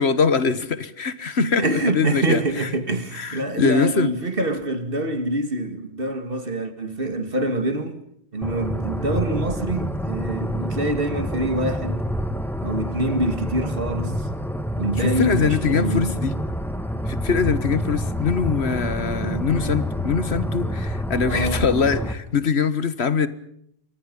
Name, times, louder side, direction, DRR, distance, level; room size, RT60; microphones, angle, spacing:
voice 1, 0.0-2.7 3.1-4.1 15.0-16.3 17.1-23.3, left 5 dB, 70° left, 1.6 m, -23 dB
voice 2, 1.6-8.0 8.3-12.0 12.6-14.3 14.8-16.1 19.4-19.8 21.2-21.6, right 1 dB, 55° right, 2.5 m, -25 dB
sound 1, 8.4-22.1, equal, ahead, 1.8 m, -27 dB
28.5 x 24.0 x 5.4 m
omnidirectional pair, 1.1 m